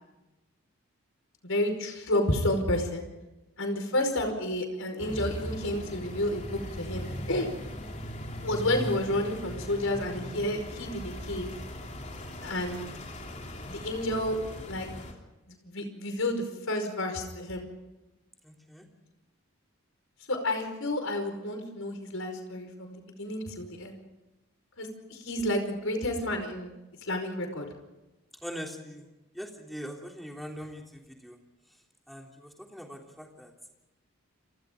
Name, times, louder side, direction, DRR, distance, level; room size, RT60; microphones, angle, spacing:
voice 1, 1.4-3.0 3.6-7.5 8.4-11.5 12.4-12.9 13.7-14.4 14.7-14.9 15.5-17.6 20.3-24.0 24.8-26.7 27.1-27.7, left 1 dB, 65° left, 6 dB, 5.1 m, -30 dB
sound 1, 5.0-15.1, left 1 dB, 30° left, 3.3 m, -39 dB
voice 2, 18.4-18.9 28.4-29.1 29.3-31.4 32.1-33.5, equal, ahead, 1 dB, 3.2 m, -42 dB
30.0 x 25.0 x 3.9 m, 1.0 s
head